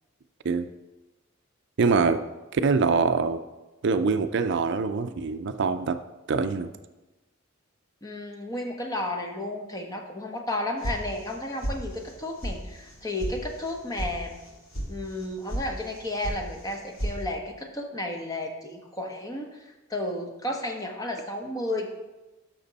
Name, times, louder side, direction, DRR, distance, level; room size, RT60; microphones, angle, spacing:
voice 1, 1.8-2.2 2.5-3.4 3.8-6.0 6.3-6.7, right 4 dB, 55° right, 10 dB, 0.4 m, -24 dB
voice 2, 8.0-14.4 14.9-21.9, left 1 dB, 15° left, 2 dB, 1.1 m, -33 dB
sound 1, 10.8-11.4 11.6-12.1 12.4-12.5 12.9-13.3 13.6-14.1 14.4-14.9 15.2-15.6 15.9-16.4 16.7-17.2, right 1 dB, 85° left, 2.2 m, -32 dB
12.0 x 6.1 x 4.1 m, 1.1 s
head